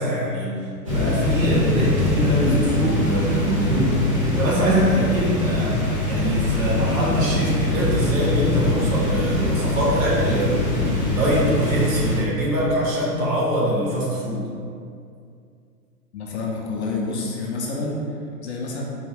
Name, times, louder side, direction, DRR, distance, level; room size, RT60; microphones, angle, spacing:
voice 1, 0.0-4.1 4.3-5.8 6.1-10.6 11.0-14.5, equal, 55° right, -5 dB, 1.3 m, -23 dB
sound 1, 0.8-12.2, left 2 dB, 25° right, 0.3 m, -23 dB
voice 2, 16.1-18.0 18.4-18.8, left 3 dB, 45° left, -2 dB, 0.5 m, -28 dB
4.4 x 2.3 x 3.3 m, 2.4 s
hypercardioid pair, 140°, 48 cm